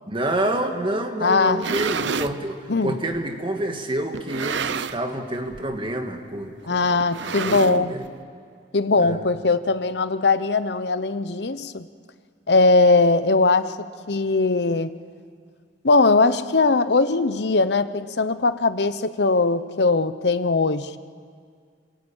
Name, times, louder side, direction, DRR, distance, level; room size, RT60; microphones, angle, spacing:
voice 1, 0.1-8.1 9.0-9.2, right 1 dB, 30° right, 4 dB, 1.9 m, -28 dB
voice 2, 1.2-1.6 2.7-3.0 6.7-8.0 8.7-11.9 12.5-13.8 14.1-15.0 15.8-21.0, left 3 dB, 65° left, 13 dB, 0.9 m, -20 dB
sound 1, 1.4-2.4 3.1-3.2 4.1-5.2 5.5-5.8 6.0-6.1 7.0-8.1, right 6 dB, 75° right, 0.7 m, -29 dB
28.0 x 17.0 x 8.9 m, 2.1 s
head